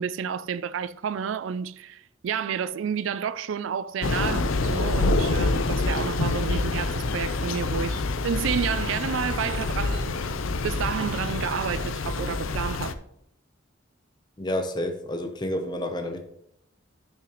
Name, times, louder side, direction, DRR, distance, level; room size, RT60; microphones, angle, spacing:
voice 1, 0.0-10.3 10.6-13.0, right 7 dB, 75° right, 0.3 m, -30 dB
Thunder / Rain, 4.0-12.9, left 3 dB, 85° left, 0.6 m, -27 dB
voice 2, 14.4-16.2, left 1 dB, 20° left, 0.8 m, -29 dB
12.5 x 6.0 x 3.1 m
head